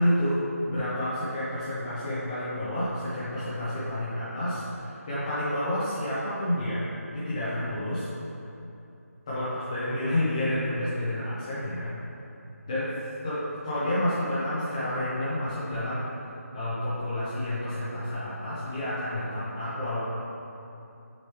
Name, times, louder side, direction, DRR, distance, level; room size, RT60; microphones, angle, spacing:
voice 1, 0.0-6.9 7.1-8.1 9.3-11.9 12.7-12.9 13.2-16.1 16.5-20.0, left 1 dB, 20° left, -12 dB, 1.0 m, -29 dB
8.5 x 4.6 x 3.0 m, 2.7 s
figure-of-eight pair, 160°, 8 cm